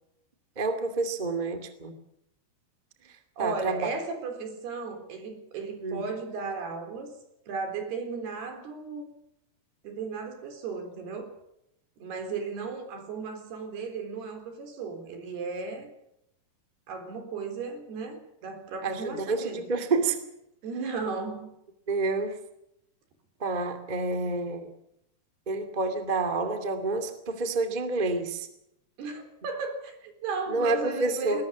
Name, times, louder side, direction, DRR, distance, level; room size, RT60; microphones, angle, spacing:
voice 1, 0.5-1.9 3.4-3.9 5.8-6.0 18.8-20.2 21.9-22.4 23.4-24.7 25.4-28.5 30.5-31.4, right 3 dB, 15° right, 7 dB, 1.7 m, -28 dB
voice 2, 3.4-7.1 7.5-9.1 9.8-11.3 12.0-15.9 16.9-19.6 20.6-21.5 29.0-31.4, right 4 dB, 75° right, 6 dB, 6.0 m, -35 dB
21.5 x 20.0 x 7.2 m, 0.80 s
omnidirectional pair, 4.6 m